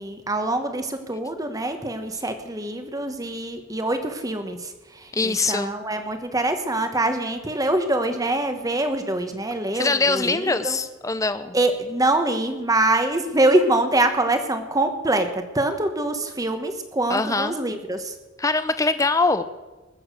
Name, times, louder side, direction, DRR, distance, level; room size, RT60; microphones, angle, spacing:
voice 1, 0.0-10.8 11.5-18.1, right 2 dB, 15° right, 7 dB, 1.2 m, -24 dB
voice 2, 5.1-5.7 9.7-11.6 17.1-17.6 18.4-19.4, left 3 dB, 15° left, 11 dB, 0.6 m, -23 dB
20.5 x 7.2 x 6.8 m, 1.2 s
head